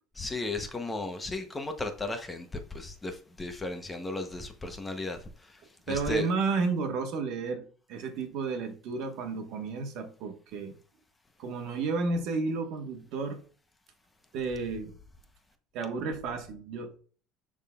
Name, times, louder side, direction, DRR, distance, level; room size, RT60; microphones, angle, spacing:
voice 1, 0.1-6.3, left 2 dB, 15° left, 0.8 m, -35 dB
voice 2, 5.9-7.6 7.9-10.8 11.4-13.4 14.3-14.9 15.7-17.0, right 4 dB, 65° right, 1.4 m, -32 dB
11.0 x 3.7 x 2.4 m
cardioid pair, 140°, 0 cm